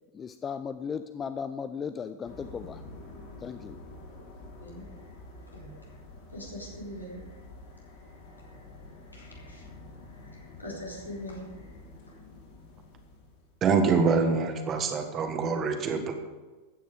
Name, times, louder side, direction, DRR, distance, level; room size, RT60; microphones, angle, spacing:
voice 1, 0.1-2.8 3.4-3.8, left 6 dB, 20° left, 11 dB, 0.5 m, -36 dB
sound 1, 2.2-13.6, left 2 dB, 50° left, 3.8 m, -48 dB
voice 2, 6.3-7.2 9.1-9.6 10.3-11.4, left 1 dB, 85° left, -4 dB, 4.0 m, -41 dB
voice 3, 13.6-16.1, right 5 dB, 30° right, 6 dB, 1.6 m, -25 dB
14.0 x 9.2 x 5.0 m, 1.3 s
figure-of-eight pair, 90°, 0 cm